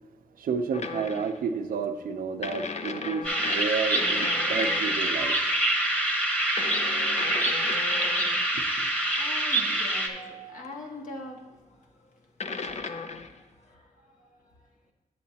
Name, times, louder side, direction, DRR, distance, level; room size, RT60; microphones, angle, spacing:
voice 1, 0.4-5.4 8.5-8.9, right 5 dB, 90° right, 7 dB, 0.6 m, -31 dB
sound 1, 0.7-1.4 2.4-5.2 6.6-8.5 10.6-10.7 12.4-13.4, left 4 dB, 50° left, 0.6 m, -36 dB
sound 2, 3.2-10.1, right 1 dB, 10° left, 1.2 m, -26 dB
voice 2, 8.9-12.0 12.4-13.3 13.6-14.4, left 1 dB, 70° left, -1 dB, 1.7 m, -44 dB
9.4 x 7.7 x 2.8 m, 1.3 s
cardioid pair, 60°, 14 cm